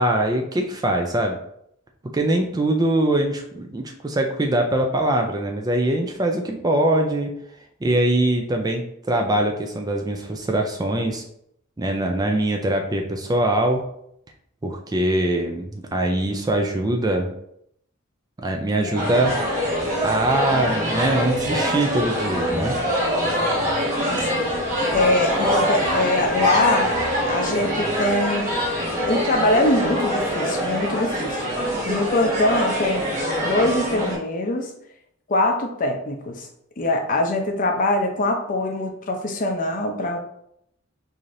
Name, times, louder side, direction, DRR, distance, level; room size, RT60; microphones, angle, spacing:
voice 1, 0.0-1.4 2.0-7.4 7.8-11.2 11.8-13.9 14.6-17.3 18.4-19.5 20.0-22.8, right 1 dB, 20° right, 3 dB, 0.3 m, -22 dB
sound 1, 18.9-34.2, equal, 35° right, 1.4 m, -24 dB
voice 2, 23.6-24.5 24.9-26.9 27.3-28.4 29.0-31.5 31.9-33.1 33.4-34.7 35.3-36.5 36.8-40.2, left 2 dB, 40° left, 3 dB, 0.5 m, -23 dB
4.8 x 2.7 x 2.5 m, 0.72 s
head